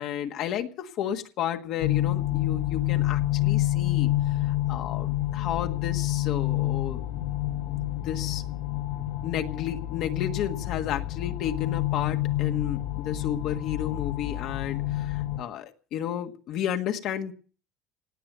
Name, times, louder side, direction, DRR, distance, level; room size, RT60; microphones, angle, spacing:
voice 1, 0.0-7.1 7.7-8.4 9.2-17.3, left 10 dB, 60° left, 5 dB, 1.5 m, -32 dB
sound 1, 1.8-15.4, left 15 dB, 85° left, 2.3 m, -28 dB
18.0 x 7.7 x 9.1 m, 0.41 s
cardioid pair, 130°, 0 cm